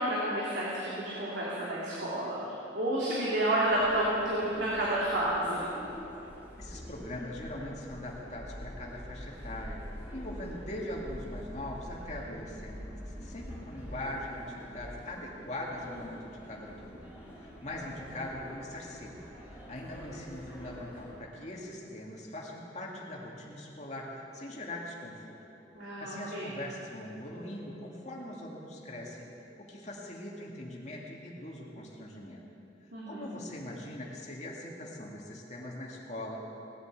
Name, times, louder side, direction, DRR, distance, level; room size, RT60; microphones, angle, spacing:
voice 1, 0.0-2.3 2.7-5.7 25.7-26.5 32.9-33.3, right 1 dB, 80° right, -7 dB, 2.9 m, -30 dB
sound 1, 3.6-21.1, equal, 10° right, 4.6 m, -46 dB
voice 2, 6.6-9.8 10.1-25.4 26.0-29.3 29.6-32.4 33.1-36.5, left 1 dB, 40° left, -2 dB, 2.3 m, -41 dB
19.0 x 8.3 x 8.3 m, 3.0 s
head